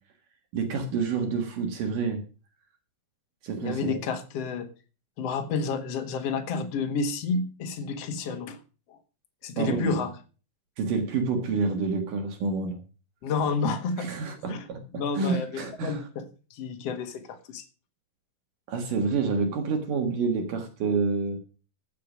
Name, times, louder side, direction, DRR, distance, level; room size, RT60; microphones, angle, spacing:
voice 1, 0.5-2.2 3.4-4.0 9.6-10.1 10.8-12.8 14.0-16.0 18.7-21.4, right 4 dB, 65° right, 5 dB, 3.0 m, -28 dB
voice 2, 3.6-4.7 5.2-8.6 8.9-9.0 9.4-10.1 13.2-14.1 14.5-14.7 15.0-17.6, left 4 dB, 50° left, 6 dB, 2.2 m, -30 dB
14.5 x 6.7 x 6.2 m, 0.36 s
omnidirectional pair, 4.3 m